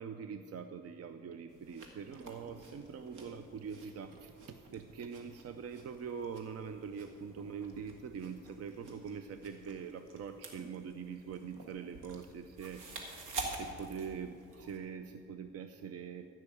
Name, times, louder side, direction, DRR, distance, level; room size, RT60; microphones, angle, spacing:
voice 1, 0.0-13.2 13.5-16.3, right 6 dB, 55° right, 9 dB, 0.6 m, -44 dB
sound 1, 1.5-14.8, right 2 dB, 90° right, 2.1 m, -49 dB
15.0 x 5.9 x 8.5 m, 2.6 s
cardioid pair, 90°, 30 cm